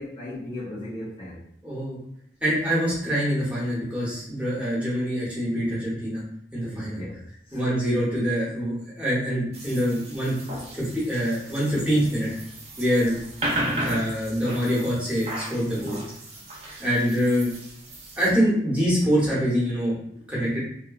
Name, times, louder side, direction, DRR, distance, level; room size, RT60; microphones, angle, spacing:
voice 1, 0.0-1.5 6.7-7.6, left 1 dB, 30° left, -8 dB, 0.5 m, -37 dB
voice 2, 1.6-2.0 2.4-6.2 6.5-7.0 7.5-10.3 10.7-12.3 12.8-13.1 13.8-16.0 16.8-17.5 18.2-20.6, equal, 10° right, -8 dB, 1.0 m, -25 dB
sound 1, 9.5-18.3, right 1 dB, 35° right, 0.5 m, -35 dB
2.8 x 2.2 x 2.3 m, 0.75 s
head